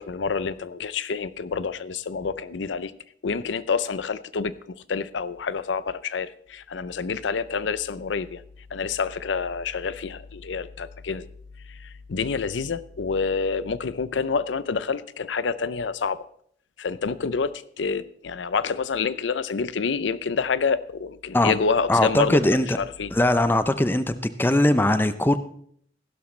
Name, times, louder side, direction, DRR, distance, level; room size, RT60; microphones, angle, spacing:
voice 1, 0.0-2.9 3.2-8.4 8.7-11.3 11.7-16.3 16.8-22.4 22.8-23.1, left 5 dB, 85° left, 16 dB, 0.6 m, -28 dB
voice 2, 21.9-22.8 23.1-24.1 24.4-25.4, left 1 dB, 10° left, 12 dB, 0.5 m, -20 dB
15.5 x 12.0 x 3.2 m, 0.63 s
head